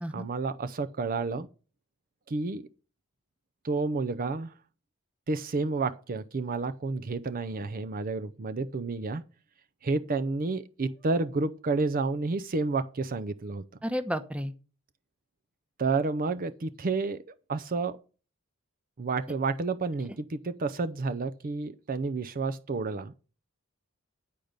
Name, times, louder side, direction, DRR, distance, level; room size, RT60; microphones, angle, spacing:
voice 1, 0.1-1.5 2.3-2.6 3.6-4.5 5.3-9.2 9.8-13.6 15.8-17.2 17.5-18.0 19.0-23.1, right 3 dB, 40° right, 0.5 m, -30 dB
voice 2, 13.8-14.5, equal, 5° right, 0.9 m, -32 dB
10.0 x 5.1 x 8.0 m
head